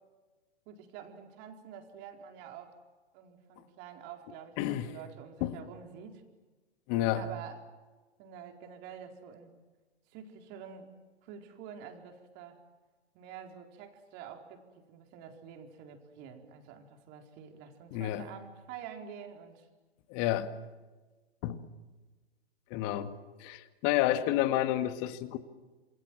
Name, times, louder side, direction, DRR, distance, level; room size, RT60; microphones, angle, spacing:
voice 1, 0.7-2.7 3.1-6.2 7.2-7.6 8.2-9.6 10.1-10.9 11.2-12.6 13.1-19.7, right 8 dB, 30° right, 4 dB, 4.3 m, -48 dB
voice 2, 4.6-4.9 5.4-5.6 6.9-7.2 17.9-18.3 20.1-20.5 21.4-21.6 22.7-23.1 23.4-25.4, left 13 dB, 30° left, 10 dB, 2.1 m, -30 dB
28.0 x 27.5 x 7.6 m, 1.3 s
figure-of-eight pair, 120°, 32 cm